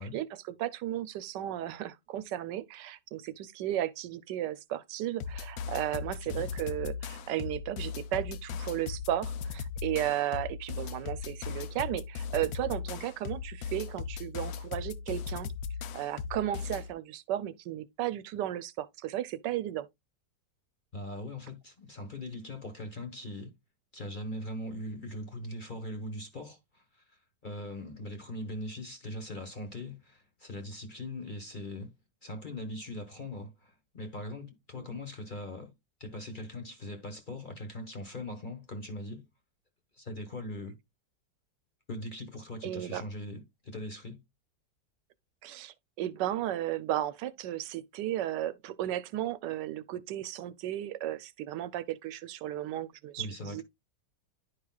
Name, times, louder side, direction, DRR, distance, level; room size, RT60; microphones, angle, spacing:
voice 1, 0.0-15.5 15.9-19.9 34.8-34.9 42.6-43.0 45.4-53.6, right 12 dB, 85° right, 1.3 m, -34 dB
sound 1, 5.2-16.9, left 6 dB, 70° left, 1.1 m, -38 dB
voice 2, 6.2-6.5 20.9-23.5 23.9-31.9 32.2-35.7 36.0-39.3 40.0-40.8 41.9-44.2 53.2-53.6, left 1 dB, 35° left, 1.1 m, -41 dB
10.5 x 4.9 x 2.3 m
omnidirectional pair, 1.8 m